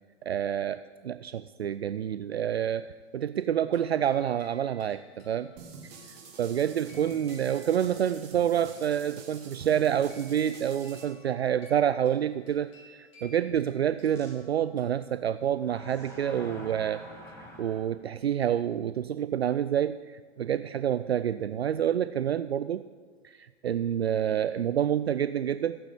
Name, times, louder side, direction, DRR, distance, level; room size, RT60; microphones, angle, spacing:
voice 1, 0.2-5.5 6.4-12.7 13.0-17.0 17.6-22.9 23.2-25.8, right 9 dB, 65° right, 14 dB, 0.5 m, -28 dB
sound 1, 3.7-15.5, left 2 dB, 55° left, 4.8 m, -57 dB
sound 2, 5.6-11.0, right 5 dB, 35° right, 2.6 m, -47 dB
sound 3, 9.6-9.7 14.1-14.3 15.6-17.8, left 1 dB, 5° left, 2.7 m, -46 dB
15.5 x 9.0 x 8.0 m, 1.5 s
figure-of-eight pair, 115°, 35 cm